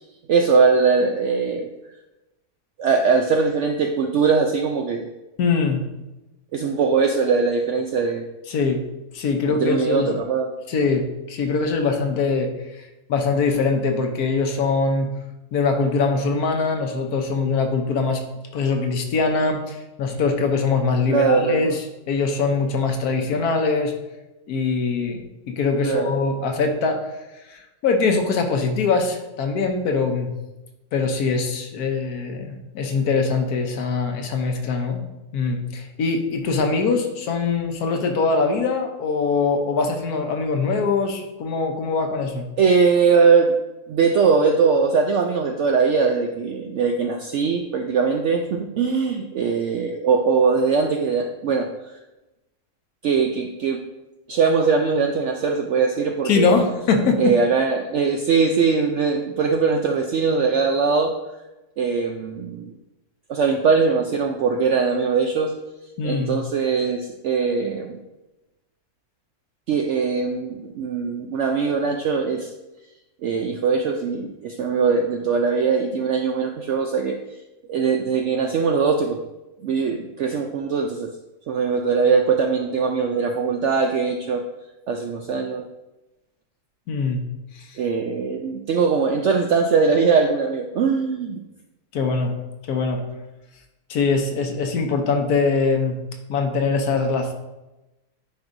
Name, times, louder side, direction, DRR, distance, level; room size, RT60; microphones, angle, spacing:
voice 1, 0.3-1.7 2.8-5.1 6.5-8.3 9.5-10.5 21.1-21.7 25.8-26.1 42.6-43.6 43.9-51.7 53.0-53.8 54.3-56.7 57.2-61.1 61.8-62.7 63.3-65.5 66.0-68.0 69.7-72.5 73.2-77.2 77.7-79.2 79.6-81.1 81.5-84.4 84.9-85.6 87.8-91.4, right 5 dB, 75° right, 4 dB, 0.6 m, -21 dB
voice 2, 5.4-5.8 8.5-8.8 9.1-10.1 10.7-12.5 12.8-15.1 15.5-18.2 18.5-23.9 24.5-27.0 27.5-30.3 30.9-35.0 35.3-42.5 56.2-57.4 66.0-66.4 86.9-87.2 87.5-87.6 91.9-92.3 92.7-93.0 93.9-96.0 96.3-97.3, left 4 dB, 75° left, 4 dB, 1.3 m, -22 dB
9.6 x 4.5 x 2.6 m, 1.0 s
omnidirectional pair, 1.7 m